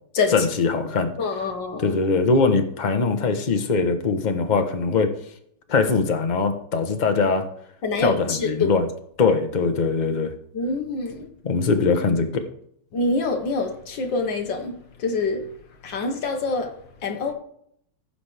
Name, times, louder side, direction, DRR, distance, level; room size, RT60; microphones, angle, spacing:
voice 1, 0.3-1.1 1.8-5.1 5.7-7.5 8.0-8.9 9.2-10.3 11.4-12.4, left 4 dB, 35° left, 0.7 m, -21 dB
voice 2, 1.2-2.0 7.8-8.7 10.5-11.3 12.9-15.4 15.8-16.7 17.0-17.3, left 3 dB, 60° left, 2.0 m, -26 dB
15.5 x 6.0 x 3.4 m
omnidirectional pair, 2.4 m